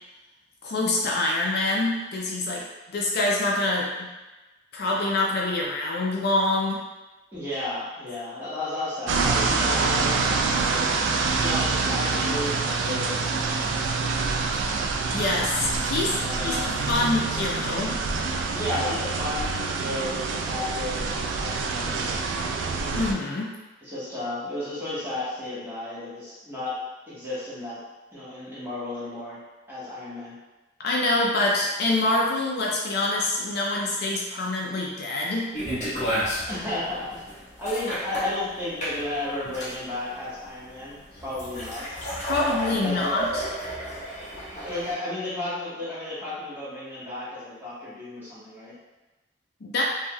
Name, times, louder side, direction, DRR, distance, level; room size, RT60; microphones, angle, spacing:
voice 1, 0.6-4.1 4.7-6.8 15.1-18.0 22.9-23.5 30.8-35.5 42.2-43.5 49.6-49.8, left 2 dB, 60° left, -2 dB, 0.4 m, -26 dB
voice 2, 7.3-10.8 11.2-13.6 16.1-16.7 18.5-22.2 23.8-26.7 27.1-27.8 28.1-29.4 29.7-30.4 36.5-37.1 37.6-41.9 42.8-43.2 44.6-48.7, left 1 dB, 10° right, -11 dB, 1.2 m, -33 dB
sound 1, 9.1-23.1, right 4 dB, 70° right, 0.3 m, -26 dB
sound 2, 35.5-44.9, equal, 40° left, 0.8 m, -32 dB
3.3 x 2.6 x 2.2 m, 1.1 s
head